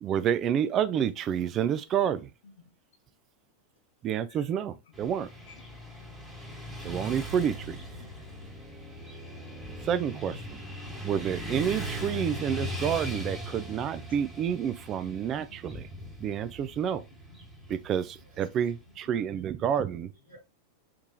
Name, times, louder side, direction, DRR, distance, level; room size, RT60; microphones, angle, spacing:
voice 1, 0.0-2.3 4.0-5.3 6.8-7.8 9.8-10.6 11.0-15.9 16.2-17.0 17.7-20.1, right 9 dB, 30° right, 0.4 m, -29 dB
Motorcycle / Traffic noise roadway noise, 4.9-19.0, equal, 5° right, 1.4 m, -40 dB
voice 2, 5.5-5.8 7.9-8.1 14.1-14.2 14.7-15.4 16.7-17.4, left 6 dB, 60° left, 0.9 m, -55 dB
voice 3, 19.1-19.4 19.7-20.4, right 1 dB, 70° right, 1.2 m, -56 dB
3.5 x 3.1 x 2.2 m
figure-of-eight pair, 90°, 0 cm